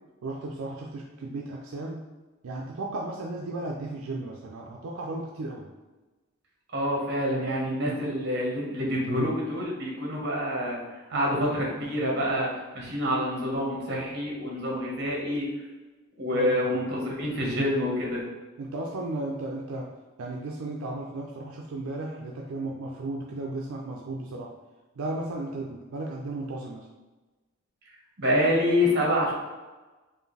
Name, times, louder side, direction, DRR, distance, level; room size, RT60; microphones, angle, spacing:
voice 1, 0.2-2.0 2.4-5.7 11.1-11.3 16.3-16.8 18.6-19.9 20.2-24.5 25.0-26.9, right 2 dB, 85° right, -1 dB, 0.5 m, -35 dB
voice 2, 6.7-10.8 11.1-15.5 16.2-18.2 28.2-29.3, equal, 55° right, -3 dB, 1.3 m, -27 dB
4.7 x 2.6 x 3.2 m, 1.2 s
head